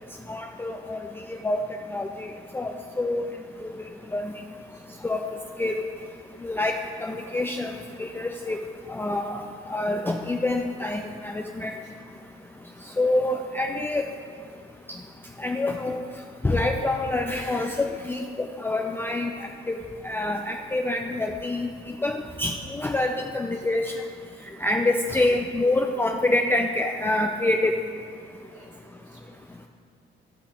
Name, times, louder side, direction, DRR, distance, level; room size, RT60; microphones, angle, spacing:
voice 1, 0.3-1.0 1.4-1.6 1.9-2.3 2.5-3.2 3.6-3.7 4.1-4.3 5.0-5.2 5.6-5.9 6.4-6.7 7.0-7.7 8.0-8.6 8.9-11.7 13.0-14.1 15.4-16.0 16.4-19.8 20.0-21.7 22.0-23.9 24.6-27.7, left 2 dB, 10° left, 3 dB, 0.4 m, -26 dB
voice 2, 28.5-29.7, right 2 dB, 35° right, -2 dB, 2.3 m, -57 dB
14.5 x 5.6 x 3.0 m, 2.1 s
cardioid pair, 90°, 20 cm